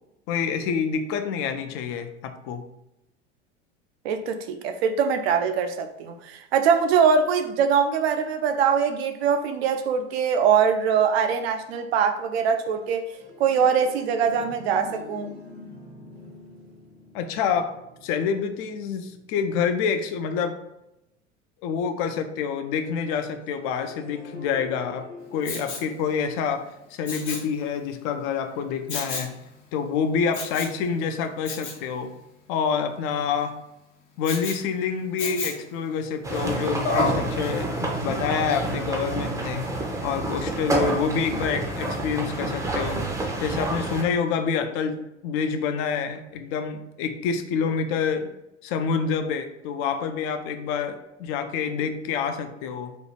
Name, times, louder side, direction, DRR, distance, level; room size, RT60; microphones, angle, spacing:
voice 1, 0.3-2.6 17.1-17.7 18.0-20.6 21.6-25.1 25.3-29.3 29.7-32.1 32.5-33.6 34.2-39.7 40.0-43.0 43.4-48.3 48.6-53.0, left 6 dB, 35° left, 0.4 m, -27 dB
voice 2, 4.0-13.1 13.4-15.3, right 6 dB, 55° right, 0.5 m, -22 dB
sound 1, 12.7-20.2 23.4-27.5, left 2 dB, 75° right, 1.3 m, -46 dB
Respiratory sounds, 25.4-25.9 27.1-27.5 28.9-29.3 30.3-30.8 31.5-31.8 34.2-34.6 35.2-35.7 36.8-37.2 37.8-37.9, left 3 dB, 70° left, 1.0 m, -29 dB
sound 2, 36.2-44.0, right 2 dB, 10° right, 0.6 m, -28 dB
4.1 x 2.3 x 3.1 m
figure-of-eight pair, 75°, 37 cm